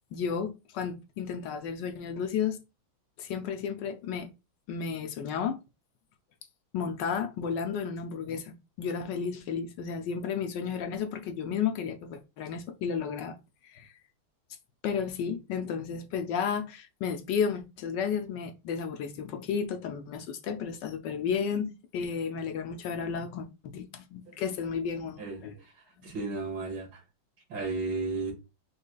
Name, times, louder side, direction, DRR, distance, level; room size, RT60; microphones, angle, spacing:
voice 1, 0.1-2.6 3.2-4.3 4.7-5.6 6.7-13.3 13.6-13.9 14.8-23.5 23.7-25.6, left 6 dB, 70° left, 1.2 m, -33 dB
voice 2, 25.2-25.7 26.0-27.0 27.5-28.3, right 3 dB, 70° right, 2.3 m, -34 dB
5.4 x 3.2 x 2.2 m
omnidirectional pair, 2.1 m